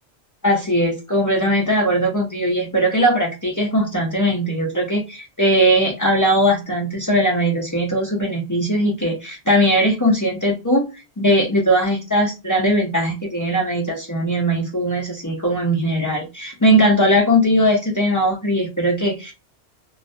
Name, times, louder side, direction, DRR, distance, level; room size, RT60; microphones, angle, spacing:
voice 1, 0.4-10.9 11.2-19.3, equal, 30° left, -1 dB, 0.3 m, -19 dB
2.3 x 2.1 x 2.5 m, 0.26 s
omnidirectional pair, 1.1 m